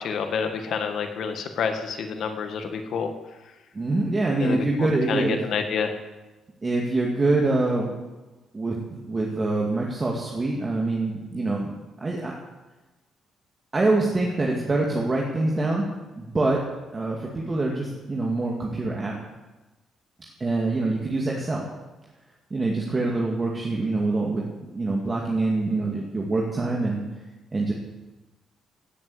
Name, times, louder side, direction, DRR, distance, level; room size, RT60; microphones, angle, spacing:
voice 1, 0.0-3.1 4.4-5.9, left 6 dB, 65° left, 6 dB, 1.9 m, -28 dB
voice 2, 3.7-5.4 6.6-7.9 8.5-11.7 12.0-12.3 13.7-15.9 16.2-16.6 16.9-19.1 20.4-21.7 22.5-24.4 24.7-27.0 27.5-27.7, right 2 dB, 30° right, -2 dB, 2.3 m, -25 dB
17.0 x 7.5 x 8.0 m, 1.1 s
cardioid pair, 90°, 0 cm